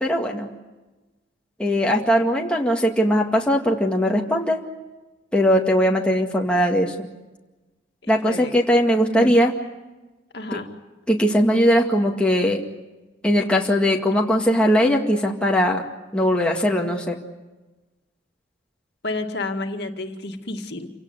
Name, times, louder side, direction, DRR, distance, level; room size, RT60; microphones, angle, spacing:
voice 1, 0.0-0.5 1.6-4.6 5.3-7.1 8.1-9.5 10.5-10.6 11.1-12.6 13.2-15.8 16.1-17.2, equal, 5° left, -1 dB, 2.0 m, -20 dB
voice 2, 8.0-8.5 9.2-9.3 10.3-10.7 19.0-20.9, left 2 dB, 60° left, 4 dB, 2.2 m, -30 dB
28.5 x 17.5 x 9.7 m, 1.1 s
head